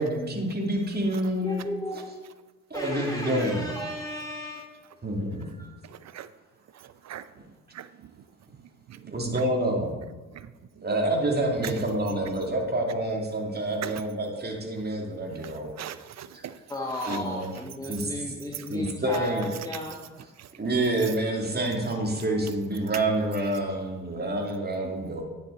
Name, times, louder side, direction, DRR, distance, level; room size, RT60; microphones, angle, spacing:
voice 1, 0.0-1.6 2.7-3.7 5.0-5.5 9.1-10.0 10.8-15.7 16.3-16.4 17.1-17.5 17.9-18.1 18.7-19.5 20.6-25.2, right 1 dB, 25° right, 2.5 m, -28 dB
voice 2, 1.4-2.1 2.7-4.8 5.6-5.7 16.7-20.0 24.8-24.9, left 1 dB, 10° left, 1.3 m, -34 dB
voice 3, 5.8-6.3 6.7-7.3 7.7-8.1 8.9-9.4 10.3-10.5 10.8-10.9 11.6-11.7 13.8-14.0 15.4-16.6 17.0-17.2 18.5-18.7 20.4-20.5, right 11 dB, 45° right, 0.6 m, -40 dB
9.9 x 6.9 x 4.1 m
hypercardioid pair, 45°, 38 cm